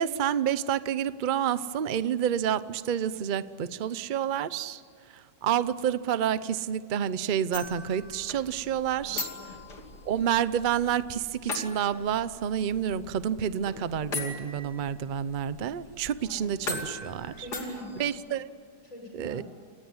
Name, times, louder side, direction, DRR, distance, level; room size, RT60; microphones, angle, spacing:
voice 1, 0.0-4.8 5.1-9.3 10.1-17.5 18.0-18.5 19.1-19.4, right 9 dB, 65° right, 16 dB, 0.4 m, -29 dB
sound 1, 7.5-18.1, left 3 dB, 65° left, 3.3 m, -40 dB
voice 2, 9.0-9.6 16.2-16.5 17.3-18.0 18.8-19.4, equal, 45° left, 1 dB, 6.9 m, -43 dB
28.5 x 19.0 x 9.6 m, 2.4 s
omnidirectional pair, 1.9 m